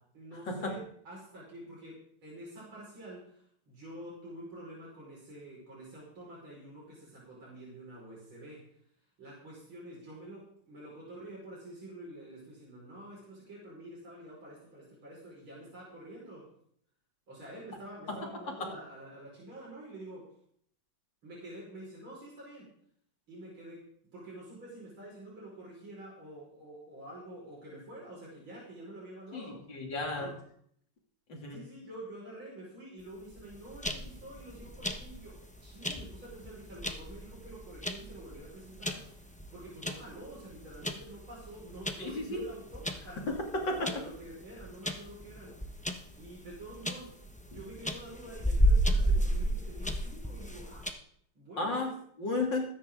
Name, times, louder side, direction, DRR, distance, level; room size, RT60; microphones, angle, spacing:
voice 1, 0.1-8.8 9.2-16.5 17.3-20.3 21.2-22.7 23.3-29.6 30.2-30.4 31.5-43.2 43.6-45.6 46.2-50.9 51.4-52.0, right 1 dB, 80° right, -6 dB, 6.1 m, -48 dB
voice 2, 29.3-30.3 31.3-31.6 42.0-42.4 51.6-51.9 52.2-52.7, left 3 dB, 60° left, 0 dB, 3.7 m, -33 dB
sound 1, 33.3-50.9, equal, 5° left, 0.6 m, -33 dB
22.0 x 10.0 x 3.8 m, 0.64 s
omnidirectional pair, 2.2 m